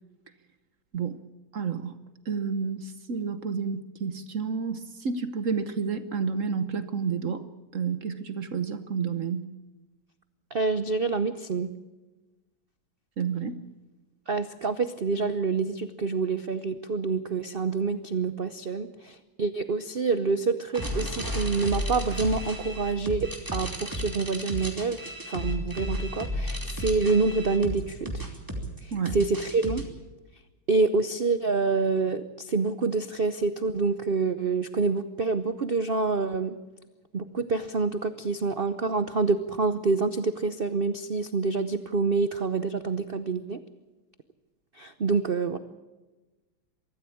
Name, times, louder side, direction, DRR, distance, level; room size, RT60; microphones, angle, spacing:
voice 1, 1.5-2.0 2.3-7.5 7.7-9.5 13.2-13.6 28.9-29.2, right 5 dB, 50° right, 11 dB, 1.1 m, -30 dB
voice 2, 10.5-11.7 14.3-25.0 25.3-28.2 28.8-29.8 30.7-36.6 37.1-43.6 44.7-45.6, right 4 dB, 80° right, 11 dB, 0.5 m, -27 dB
sound 1, 20.7-29.8, equal, 10° right, 2.8 m, -33 dB
23.0 x 14.0 x 8.5 m, 1.2 s
omnidirectional pair, 2.2 m